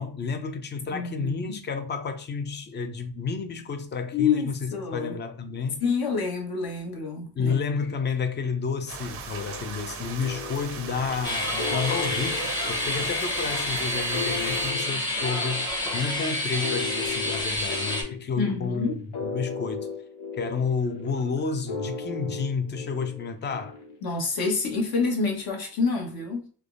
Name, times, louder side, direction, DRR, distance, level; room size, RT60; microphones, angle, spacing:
voice 1, 0.0-5.8 7.4-15.7 15.9-19.9 20.3-23.8, left 5 dB, 30° left, 0.3 m, -30 dB
voice 2, 0.9-1.6 4.1-5.2 5.8-7.6 18.4-19.0 24.0-26.4, left 5 dB, 60° left, 1.0 m, -27 dB
sound 1, 8.9-14.7, right 5 dB, 35° right, 0.4 m, -38 dB
sound 2, 10.2-24.0, left 5 dB, 90° left, 0.9 m, -37 dB
sound 3, 11.2-18.0, left 1 dB, 10° left, 0.8 m, -29 dB
3.3 x 2.1 x 2.4 m
cardioid pair, 140°, 41 cm